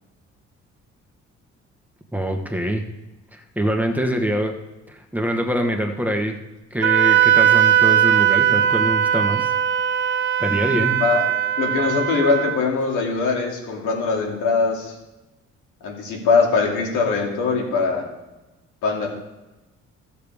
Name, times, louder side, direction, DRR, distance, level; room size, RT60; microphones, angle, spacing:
voice 1, 2.1-2.8 3.3-4.5 4.9-6.4 6.7-9.5 10.4-11.0, equal, 5° right, 3 dB, 1.2 m, -24 dB
Wind instrument woodwind instrument, 6.8-12.6, right 10 dB, 40° right, 0.7 m, -19 dB
voice 2, 11.6-15.0 15.8-18.0 18.8-19.1, left 4 dB, 90° left, -1 dB, 2.6 m, -21 dB
15.5 x 6.8 x 3.5 m, 1.0 s
cardioid pair, 90°, 30 cm